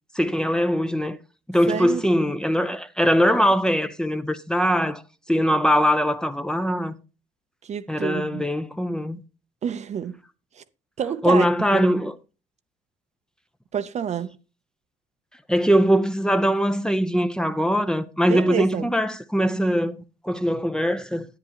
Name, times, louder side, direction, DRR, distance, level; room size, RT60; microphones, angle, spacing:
voice 1, 0.1-1.2 1.5-5.0 5.3-6.9 7.9-9.2 11.2-12.1 15.5-20.0 20.2-21.3, equal, 5° left, 0.6 m, -21 dB
voice 2, 1.7-2.0 7.6-8.4 9.6-10.2 10.6-10.7 11.0-11.5 11.7-11.9 13.7-14.3 18.2-18.9, right 8 dB, 40° right, 0.6 m, -28 dB
10.5 x 9.7 x 2.9 m
cardioid pair, 110°, 17 cm